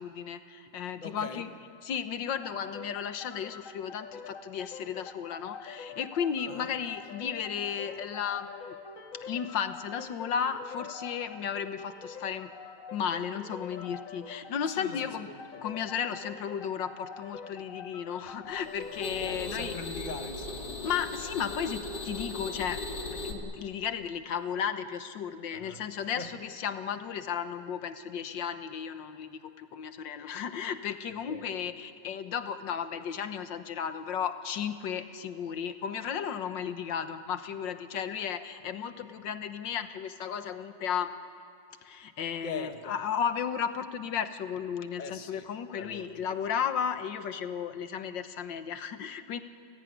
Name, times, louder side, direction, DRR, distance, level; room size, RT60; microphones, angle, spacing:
voice 1, 0.0-1.5 1.8-8.8 9.1-12.5 12.9-15.3 15.6-19.7 20.8-22.8 23.1-41.1 41.8-49.4, left 7 dB, 85° left, 9 dB, 1.8 m, -34 dB
voice 2, 1.0-1.4 6.5-6.7 14.7-15.0 15.3-15.4 19.2-20.7 25.5-25.8 26.2-26.3 31.3-31.5 42.4-42.9 45.0-46.4, left 4 dB, 30° left, 6 dB, 1.4 m, -41 dB
sound 1, 2.4-19.9, left 6 dB, 50° left, 1.6 m, -45 dB
sound 2, 18.5-23.3, left 2 dB, 70° left, 3.0 m, -38 dB
30.0 x 16.5 x 10.0 m, 2.6 s
omnidirectional pair, 1.9 m